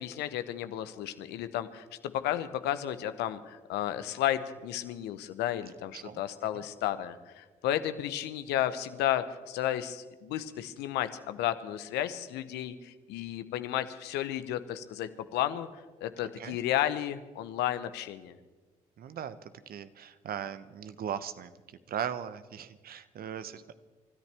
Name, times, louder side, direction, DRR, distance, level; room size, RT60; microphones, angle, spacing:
voice 1, 0.0-15.7 16.0-18.4, left 12 dB, 75° left, 11 dB, 0.9 m, -33 dB
voice 2, 19.0-21.5 21.9-23.7, right 9 dB, 60° right, 13 dB, 0.9 m, -38 dB
29.5 x 13.5 x 3.4 m, 1.3 s
hypercardioid pair, 45°, 18 cm